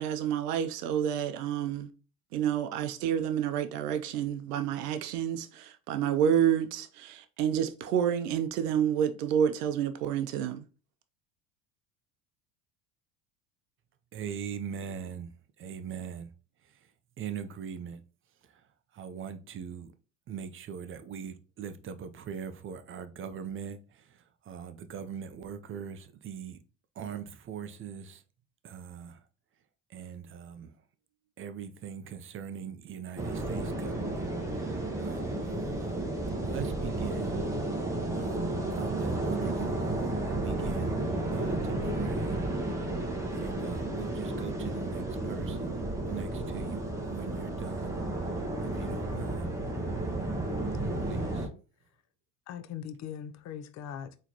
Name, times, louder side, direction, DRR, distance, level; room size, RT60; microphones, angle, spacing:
voice 1, 0.0-1.9 2.3-10.6, right 9 dB, 85° right, 0.6 m, -29 dB
voice 2, 14.1-16.3 16.6-16.9 17.2-18.0 18.4-19.9 20.3-26.6 27.0-28.2 28.6-29.2 29.9-30.8 31.4-35.6 36.4-37.5 37.8-41.0 41.3-42.4 43.3-48.0 48.6-49.5 51.0-51.5, right 7 dB, 30° right, 0.5 m, -41 dB
sound 1, 33.2-51.5, right 2 dB, 5° right, 1.0 m, -32 dB
voice 3, 50.8-51.5 52.5-54.1, left 9 dB, 40° left, 0.5 m, -41 dB
3.9 x 3.1 x 2.8 m
hypercardioid pair, 85°, 46 cm